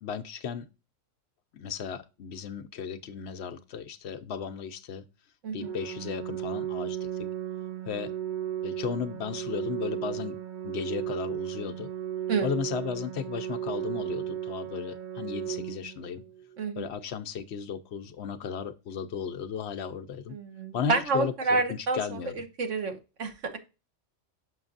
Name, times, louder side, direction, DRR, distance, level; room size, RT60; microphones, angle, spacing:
voice 1, 0.0-0.7 1.5-5.0 5.5-7.3 7.9-8.1 8.6-10.4 10.6-11.9 12.4-16.2 16.8-20.3 20.7-22.4, left 7 dB, 65° left, 0.9 m, -35 dB
Organ, 5.6-16.6, right 10 dB, 60° right, 0.5 m, -35 dB
voice 2, 16.6-16.9 20.3-23.6, right 4 dB, 80° right, 1.4 m, -29 dB
6.3 x 6.0 x 2.5 m
omnidirectional pair, 1.3 m